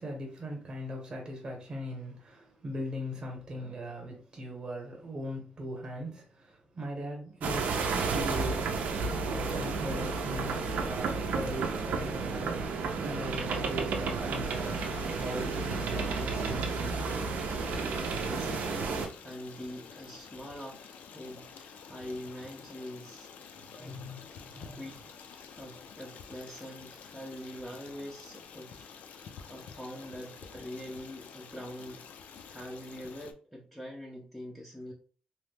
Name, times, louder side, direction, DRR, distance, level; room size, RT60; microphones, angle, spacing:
voice 1, 0.0-7.7 8.1-8.7 9.2-12.6 13.0-17.0 23.7-24.8, equal, 30° right, 0.8 m, -39 dB
sound 1, 7.4-19.1, right 4 dB, 80° right, 0.5 m, -32 dB
Stream, 14.4-33.3, left 6 dB, 70° left, 0.4 m, -49 dB
voice 2, 17.9-23.3 23.8-24.0 24.7-25.0 25.3-28.9 29.2-32.1 32.5-34.9, equal, 5° left, 0.4 m, -44 dB
2.9 x 2.1 x 3.2 m
wide cardioid pair, 175°, 3 cm